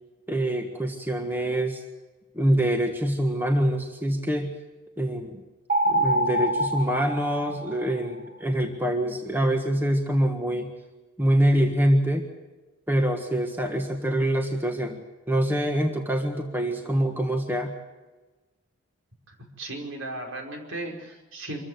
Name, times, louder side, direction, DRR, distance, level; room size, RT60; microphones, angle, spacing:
voice 1, 0.3-1.8 2.3-4.5 5.0-5.4 5.9-10.7 11.2-12.2 12.9-15.0 15.3-17.7, right 1 dB, 10° right, 3 dB, 1.5 m, -25 dB
sound 1, 5.7-8.1, right 1 dB, 40° right, 3.6 m, -25 dB
voice 2, 19.3-21.6, right 2 dB, 70° right, 2 dB, 5.1 m, -36 dB
25.5 x 15.0 x 8.1 m, 1.2 s
head